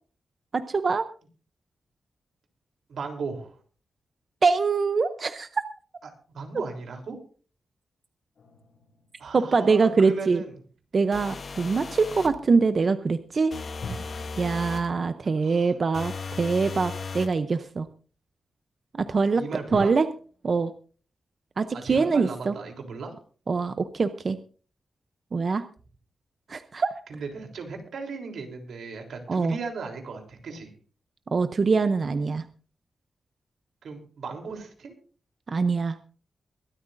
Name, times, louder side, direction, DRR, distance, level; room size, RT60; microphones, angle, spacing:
voice 1, 0.5-1.0 4.4-5.6 9.3-10.4 10.9-13.5 14.4-17.9 18.9-19.4 19.7-20.1 20.4-20.7 21.6-22.5 23.5-24.4 25.3-25.6 26.5-26.9 29.3-29.6 31.3-32.4 35.5-36.0, right 4 dB, 40° right, 10 dB, 0.6 m, -24 dB
voice 2, 2.9-3.6 6.3-7.2 9.2-10.5 15.4-15.7 19.3-19.9 21.7-23.2 27.1-30.7 33.8-35.0, right 4 dB, 85° right, 3 dB, 3.4 m, -37 dB
sound 1, 8.3-10.9 13.8-17.2 17.9-18.0 19.7-19.8, left 3 dB, 65° left, 7.2 m, -45 dB
sound 2, 11.1-12.4 13.5-14.9 15.9-17.4, left 4 dB, 45° left, 1.0 m, -36 dB
22.5 x 13.0 x 2.6 m, 0.40 s
wide cardioid pair, 170°, 0 cm